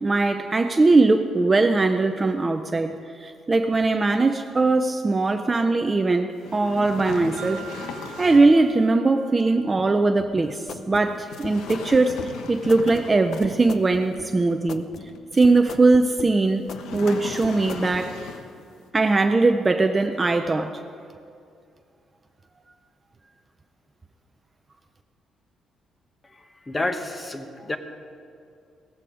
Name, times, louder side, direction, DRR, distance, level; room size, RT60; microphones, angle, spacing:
voice 1, 0.0-2.9 3.2-7.7 8.2-14.9 15.3-18.2 18.9-20.8, right 3 dB, 20° right, 7 dB, 0.5 m, -20 dB
sound 1, 6.4-8.6 11.2-13.9 16.6-18.6, left 5 dB, 90° left, 1.2 m, -37 dB
sound 2, 7.4-11.4, right 12 dB, 85° right, 1.0 m, -46 dB
sound 3, 10.2-18.1, left 7 dB, 55° left, 0.7 m, -40 dB
voice 2, 26.2-27.8, left 2 dB, 15° left, 7 dB, 1.0 m, -30 dB
17.5 x 14.5 x 5.0 m, 2.4 s
cardioid pair, 155°, 0 cm